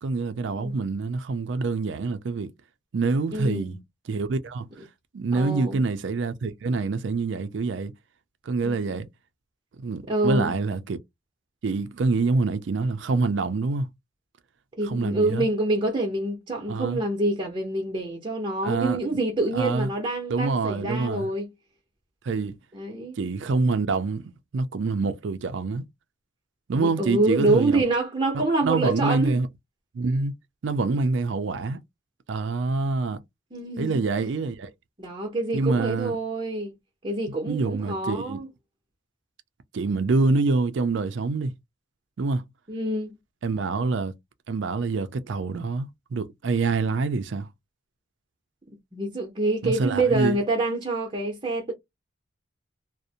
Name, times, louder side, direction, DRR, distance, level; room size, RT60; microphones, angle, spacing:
voice 1, 0.0-2.5 2.9-3.8 4.1-4.7 5.1-7.9 8.5-9.1 9.8-11.0 11.6-13.9 14.8-15.5 16.7-17.0 18.6-19.0 19.5-19.9 20.3-21.3 22.2-22.6 23.2-25.8 26.7-27.8 28.3-29.5 29.9-30.3 30.6-31.8 32.3-33.2 33.8-34.7 35.5-36.2 37.5-38.4 39.7-41.5 42.2-42.4 43.4-44.1 44.5-47.5 49.6-50.4, right 3 dB, 65° right, 0.4 m, -26 dB
voice 2, 3.3-3.8 5.3-5.8 10.1-10.5 14.8-21.5 22.7-23.2 26.7-29.4 33.5-34.0 35.0-36.7 37.0-38.5 42.7-43.1 48.9-51.7, right 2 dB, 25° right, 0.7 m, -26 dB
2.5 x 2.0 x 2.7 m
head